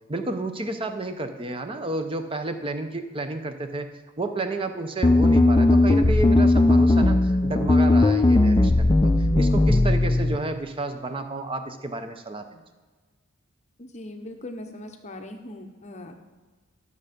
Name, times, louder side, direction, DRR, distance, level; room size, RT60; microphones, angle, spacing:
voice 1, 0.1-3.9 4.2-12.6, right 2 dB, 25° right, 7 dB, 0.7 m, -31 dB
sound 1, 5.0-10.4, left 2 dB, 15° left, 0.4 m, -18 dB
voice 2, 13.8-16.2, left 1 dB, 35° left, 5 dB, 0.9 m, -40 dB
12.5 x 6.6 x 5.2 m, 1.4 s
head